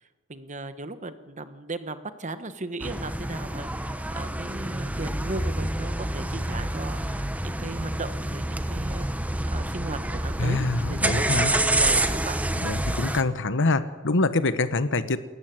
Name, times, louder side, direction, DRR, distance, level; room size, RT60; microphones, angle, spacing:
voice 1, 0.3-9.1 9.5-12.4, right 2 dB, 35° right, 11 dB, 1.2 m, -36 dB
sound 1, 2.8-13.2, right 1 dB, 5° right, 1.1 m, -28 dB
voice 2, 10.4-11.5 12.6-15.2, left 3 dB, 55° left, 12 dB, 1.2 m, -25 dB
28.0 x 14.0 x 9.5 m, 1.4 s
head